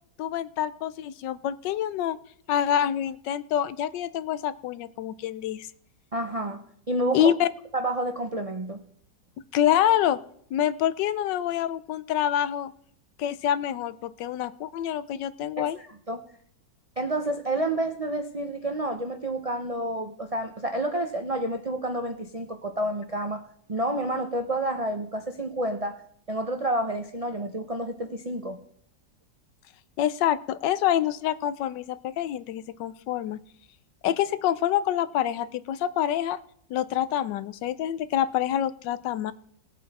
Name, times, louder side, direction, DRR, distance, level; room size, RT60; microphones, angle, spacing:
voice 1, 0.2-2.2 2.5-5.7 7.1-7.5 9.5-10.2 10.5-12.7 13.2-15.8 30.0-33.4 34.0-36.4 36.7-39.3, left 10 dB, 80° left, 15 dB, 1.3 m, -26 dB
voice 2, 6.1-7.3 7.7-8.8 15.6-15.7 16.1-16.2 17.0-23.4 23.7-26.0 26.3-28.6, right 1 dB, 65° right, 5 dB, 0.3 m, -29 dB
19.0 x 8.4 x 4.1 m, 0.65 s
omnidirectional pair, 1.9 m